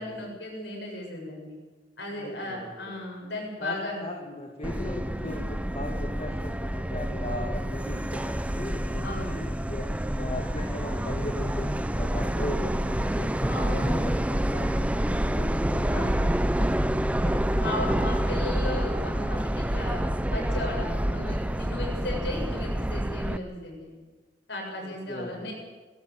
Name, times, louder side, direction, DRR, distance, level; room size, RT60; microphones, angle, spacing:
voice 1, 0.0-1.5 2.0-4.0 7.5-7.7 9.0-9.4 13.5-14.0 15.8-16.2 17.2-24.0 24.5-25.5, left 1 dB, 70° left, -1 dB, 7.8 m, -36 dB
voice 2, 2.1-2.9 3.6-16.7 24.8-25.5, left 1 dB, 35° left, 2 dB, 2.3 m, -38 dB
Subway metro underground, 4.6-23.4, right 1 dB, 10° right, 0.6 m, -28 dB
20.0 x 17.0 x 8.2 m, 1.3 s
head